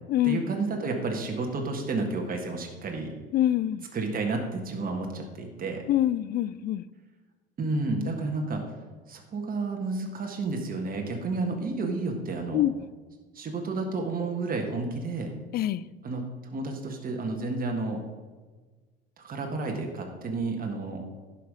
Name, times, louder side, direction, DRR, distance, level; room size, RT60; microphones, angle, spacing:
voice 1, 0.2-3.1 3.9-5.8 7.6-8.6 9.1-12.6 13.3-15.3 16.0-18.0 19.2-21.0, right 3 dB, 30° right, 2 dB, 1.6 m, -31 dB
voice 2, 3.3-3.8 5.9-6.8 12.5-12.7 15.5-15.8, left 13 dB, 30° left, 18 dB, 0.4 m, -25 dB
11.0 x 5.8 x 5.0 m, 1.3 s
figure-of-eight pair, 65°, 31 cm